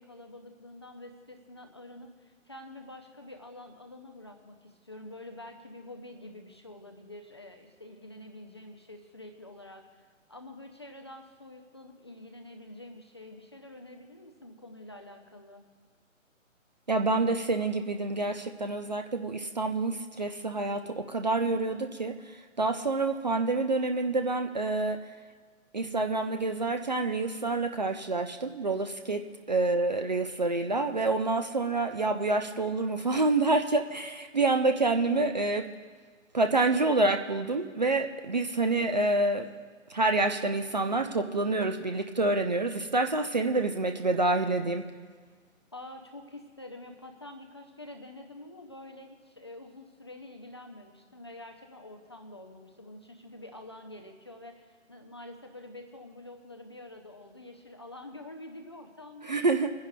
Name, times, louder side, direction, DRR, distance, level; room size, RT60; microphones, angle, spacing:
voice 1, 0.0-15.6 45.7-59.5, left 1 dB, 20° left, 4 dB, 0.5 m, -47 dB
voice 2, 16.9-25.0 25.7-35.6 36.3-39.5 39.9-44.8 59.3-59.7, right 2 dB, 35° right, 6 dB, 0.5 m, -27 dB
29.5 x 10.5 x 2.2 m, 1.5 s
figure-of-eight pair, 145°, 40 cm